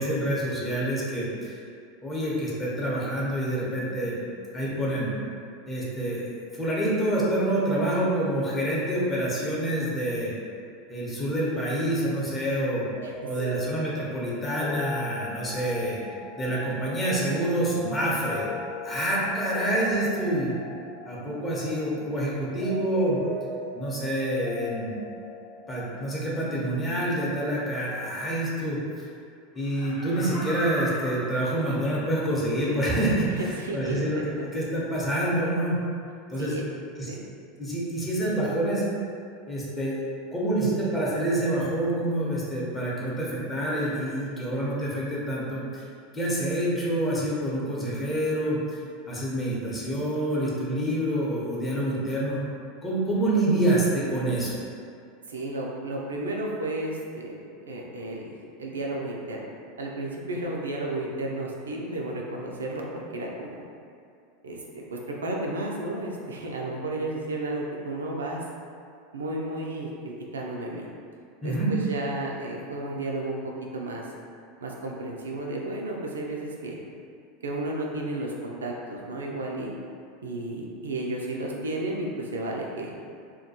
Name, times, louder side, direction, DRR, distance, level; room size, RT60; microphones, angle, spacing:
voice 1, 0.0-1.6 2.0-4.2 4.5-5.1 5.7-10.3 10.9-12.9 13.3-16.0 16.4-18.5 18.8-20.5 21.1-23.2 23.7-24.9 25.7-29.1 29.5-35.8 36.3-36.6 37.0-37.1 37.6-38.8 39.5-40.0 40.3-45.8 46.1-48.8 49.1-52.4 52.8-54.6 71.4-71.7, right 1 dB, 20° left, -6 dB, 0.7 m, -27 dB
sound 1, 12.9-25.9, left 2 dB, 35° left, 0.3 m, -39 dB
Laughter, 29.6-32.2 32.7-32.8, equal, 65° left, 0.7 m, -38 dB
voice 2, 33.6-34.5 36.3-36.6 37.1-37.2 55.3-62.9 63.1-63.6 64.4-68.4 69.1-70.9 71.4-73.4 73.7-74.0 74.6-76.8 77.4-79.7 80.2-82.9, right 2 dB, 85° right, -1 dB, 0.3 m, -33 dB
2.3 x 2.1 x 2.7 m, 2.4 s
hypercardioid pair, 90°, 0 cm